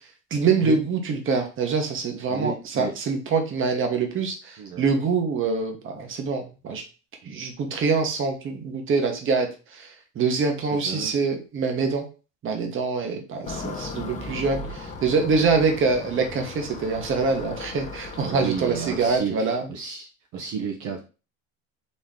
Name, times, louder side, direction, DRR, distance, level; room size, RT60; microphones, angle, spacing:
voice 1, 0.3-6.8 7.2-9.9 10.1-12.0 12.4-19.7, right 4 dB, 35° right, 4 dB, 1.1 m, -25 dB
voice 2, 2.3-2.9 4.6-4.8 10.6-11.1 18.2-20.1 20.3-21.0, right 6 dB, 55° right, 1 dB, 0.9 m, -32 dB
sound 1, 13.4-19.2, left 3 dB, 20° left, 0.7 m, -37 dB
4.3 x 3.0 x 3.7 m, 0.33 s
cardioid pair, 135°, 37 cm